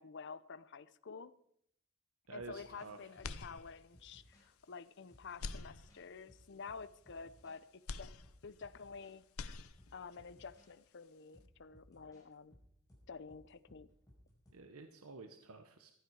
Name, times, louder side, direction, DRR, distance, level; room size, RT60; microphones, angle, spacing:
voice 1, 0.0-1.3 2.3-7.7 8.0-8.1 8.4-9.2 9.9-12.6 13.1-13.9, left 5 dB, 55° left, 16 dB, 0.6 m, -50 dB
sound 1, 2.3-4.5 5.1-7.6 8.2-9.1 9.4-10.7 11.3-14.5, equal, 15° left, 5.1 m, -64 dB
voice 2, 2.3-3.2 14.5-15.9, right 4 dB, 90° right, 6 dB, 1.0 m, -51 dB
sound 2, 3.2-4.1 4.6-4.7 5.3-6.4 7.9-9.0 9.2-10.2, left 4 dB, 85° left, 0.8 m, -46 dB
15.0 x 12.0 x 4.8 m, 0.69 s
head